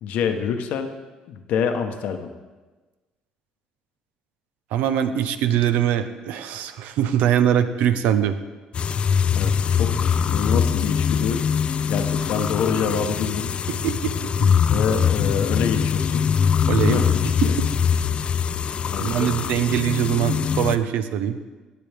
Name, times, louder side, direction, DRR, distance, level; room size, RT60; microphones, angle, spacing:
voice 1, 0.0-0.9 1.3-2.3 9.3-11.4 11.9-13.5 14.7-16.3 16.8-17.6 18.9-19.3, left 6 dB, 75° left, 6 dB, 1.0 m, -26 dB
voice 2, 4.7-8.4 13.8-14.1 14.4-14.5 16.7-17.0 19.0-21.4, right 10 dB, 80° right, 10 dB, 0.7 m, -22 dB
sound 1, 8.7-20.8, left 7 dB, 45° left, 0.4 m, -22 dB
16.0 x 7.7 x 3.5 m, 1.3 s
cardioid pair, 90°, 3 cm